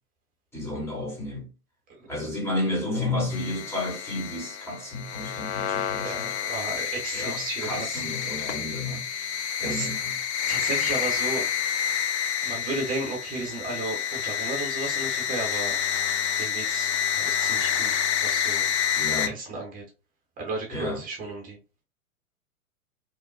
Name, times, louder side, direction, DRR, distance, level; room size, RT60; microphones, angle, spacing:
voice 1, 0.5-1.5 2.1-6.3 7.1-9.0 9.6-10.1 18.9-19.3 20.7-21.0, left 2 dB, 5° left, 1.0 m, -31 dB
sound 1, 3.3-19.3, left 9 dB, 50° left, 0.5 m, -28 dB
voice 2, 6.0-8.0 9.1-9.9 10.5-11.5 12.4-15.7 16.4-18.7 19.2-19.8 20.4-21.6, right 2 dB, 20° right, 0.8 m, -34 dB
3.0 x 2.1 x 2.4 m
figure-of-eight pair, 105°, 43 cm